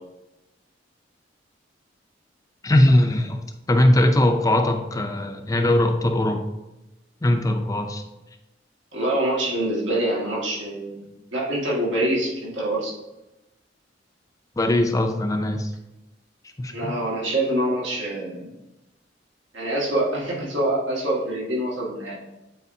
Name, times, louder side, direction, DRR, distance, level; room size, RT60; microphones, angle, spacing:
voice 1, 2.6-3.4 3.7-6.4 7.2-8.0 14.6-15.7 16.6-16.9, left 1 dB, 20° left, 5 dB, 0.4 m, -20 dB
voice 2, 8.9-11.1 11.3-12.9 16.7-18.5 19.5-22.1, right 1 dB, 85° right, -4 dB, 1.9 m, -25 dB
8.2 x 4.3 x 2.7 m, 0.96 s
head